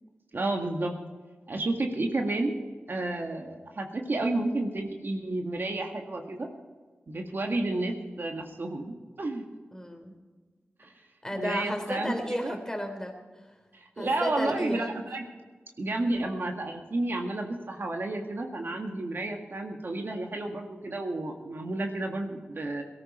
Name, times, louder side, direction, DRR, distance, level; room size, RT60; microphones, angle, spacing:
voice 1, 0.3-0.9 1.5-2.6 2.9-6.5 7.1-9.4 10.8-10.9 11.3-12.1 12.4-12.6 13.7-15.2 15.8-22.8, right 2 dB, 60° right, 3 dB, 1.8 m, -31 dB
voice 2, 9.7-10.2 11.2-13.2 14.0-14.9, left 1 dB, 15° left, 4 dB, 3.4 m, -33 dB
17.5 x 13.5 x 4.4 m, 1.4 s
cardioid pair, 45°, 4 cm